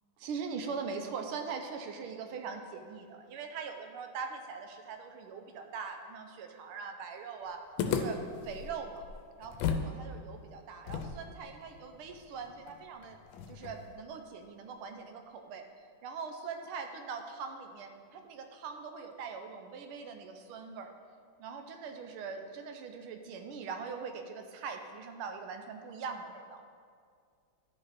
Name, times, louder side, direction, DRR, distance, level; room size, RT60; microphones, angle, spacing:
voice 1, 0.2-7.6 7.9-8.2 8.4-9.1 9.4-13.2 13.5-15.6 16.0-20.9 21.4-26.6, right 5 dB, 90° right, 5 dB, 1.6 m, -42 dB
sound 1, 7.8-9.9 10.2-10.3 10.9-14.0, left 6 dB, 75° left, 1.4 m, -36 dB
11.5 x 5.3 x 4.1 m, 2.2 s
omnidirectional pair, 2.3 m